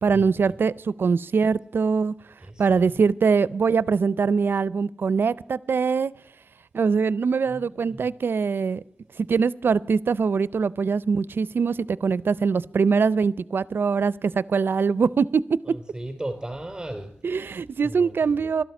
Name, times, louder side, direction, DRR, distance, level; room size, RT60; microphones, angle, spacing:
voice 1, 0.0-2.1 2.6-6.1 6.7-8.8 9.2-15.4 17.2-18.6, right 5 dB, 75° right, 19 dB, 0.4 m, -23 dB
voice 2, 7.5-8.0 15.9-17.1 17.8-18.1, right 1 dB, 15° right, 4 dB, 4.0 m, -35 dB
13.0 x 12.0 x 6.0 m, 0.71 s
wide cardioid pair, 70°, 4 cm